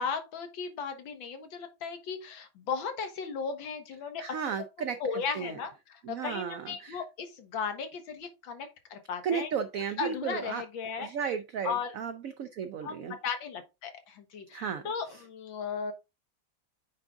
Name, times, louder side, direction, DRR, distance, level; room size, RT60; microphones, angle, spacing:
voice 1, 0.0-4.2 5.0-9.5 10.0-11.1 11.6-11.9 12.8-15.9, left 6 dB, 80° left, 2.0 m, -36 dB
voice 2, 4.2-5.0 5.3-5.6 6.0-7.0 9.2-10.6 11.0-13.2 14.5-15.2, right 7 dB, 75° right, 0.7 m, -34 dB
8.9 x 3.6 x 3.6 m
omnidirectional pair, 2.1 m